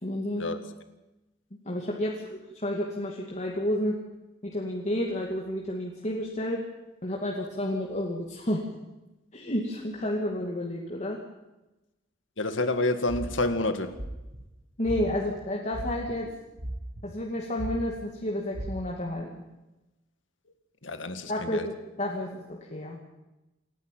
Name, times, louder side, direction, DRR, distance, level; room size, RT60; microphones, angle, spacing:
voice 1, 0.0-0.6 1.6-4.0 4.4-6.6 7.0-8.6 9.3-11.2 14.8-16.3 17.0-19.4 21.3-23.0, left 1 dB, 35° left, -1 dB, 2.5 m, -31 dB
voice 2, 12.4-13.9 20.8-21.7, left 2 dB, 75° left, 9 dB, 2.0 m, -28 dB
sound 1, 13.1-13.5 13.9-14.4 14.8-15.3 15.7-16.2 16.6-17.2 17.6-18.0 18.5-18.7, right 1 dB, 60° right, 7.6 m, -36 dB
28.0 x 11.0 x 9.2 m, 1.0 s
head